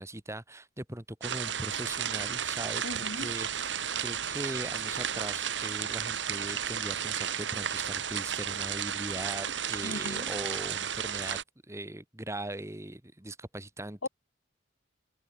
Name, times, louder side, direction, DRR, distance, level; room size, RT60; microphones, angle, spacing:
voice 1, 0.0-11.4 11.7-14.1, right 1 dB, 15° right, 1.9 m, -40 dB
sound 1, 1.2-11.4, right 8 dB, 70° right, 2.1 m, -33 dB
voice 2, 2.8-3.3 9.8-10.3 14.0-14.1, left 2 dB, 85° left, 1.8 m, -38 dB
head